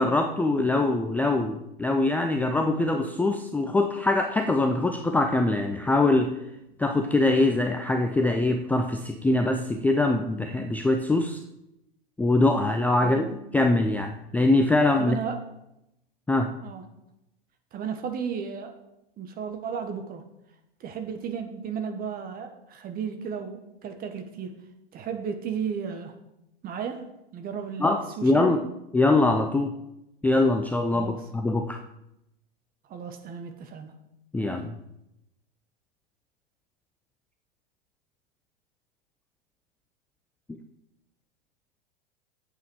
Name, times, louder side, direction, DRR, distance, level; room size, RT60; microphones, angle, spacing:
voice 1, 0.0-6.4 6.8-11.4 12.2-13.3 13.5-15.2 16.3-16.5 27.8-28.6 28.9-29.7 30.2-31.8 34.3-34.8, left 2 dB, 5° left, 5 dB, 0.5 m, -23 dB
voice 2, 13.0-13.4 15.0-15.4 16.6-16.8 17.7-18.7 19.2-20.2 20.8-24.6 24.9-26.1 26.6-27.0 27.3-28.6 30.9-31.2 32.9-33.9, right 7 dB, 30° right, 6 dB, 1.4 m, -34 dB
8.9 x 8.1 x 4.7 m, 0.85 s
hypercardioid pair, 105°, 29 cm